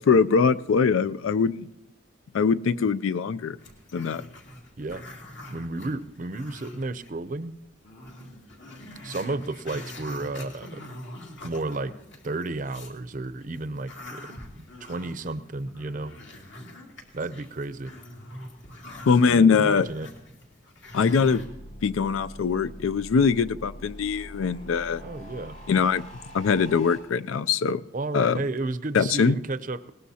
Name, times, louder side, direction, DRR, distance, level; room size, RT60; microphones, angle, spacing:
voice 1, 0.0-1.7 2.3-3.6 3.9-4.2 19.1-19.9 20.9-21.5 21.8-25.0 25.7-26.0 26.3-27.8 28.1-28.4 28.9-29.4, left 5 dB, 85° left, 15 dB, 0.4 m, -22 dB
Growling, 3.6-7.1 7.4-7.5 7.8-13.0 13.4-21.5, left 1 dB, 65° left, 2.4 m, -43 dB
voice 2, 5.5-7.6 9.0-10.9 11.4-11.9 12.2-14.2 14.6-16.2 17.1-17.9 19.3-20.1 25.0-25.6 27.9-29.9, right 2 dB, 40° right, 12 dB, 0.5 m, -32 dB
sound 1, 20.8-27.0, equal, 45° left, 4.9 m, -44 dB
20.0 x 18.5 x 2.8 m, 0.94 s
head